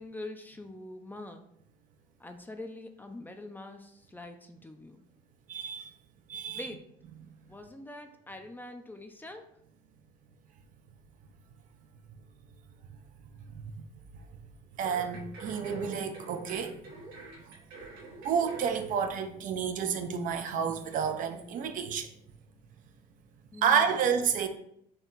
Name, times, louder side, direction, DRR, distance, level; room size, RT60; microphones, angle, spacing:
voice 1, 0.0-1.4 2.2-5.0 6.5-6.8 7.5-9.5 23.5-24.0, left 2 dB, 10° left, 0.5 m, -44 dB
voice 2, 5.5-5.9 6.3-6.7 13.5-13.7 14.8-16.8 18.2-22.1 23.6-24.5, right 7 dB, 50° right, 0.6 m, -30 dB
sound 1, 14.8-18.8 19.2-19.3, right 3 dB, 85° right, 1.2 m, -46 dB
4.4 x 3.0 x 3.8 m
supercardioid pair, 95°, 17 cm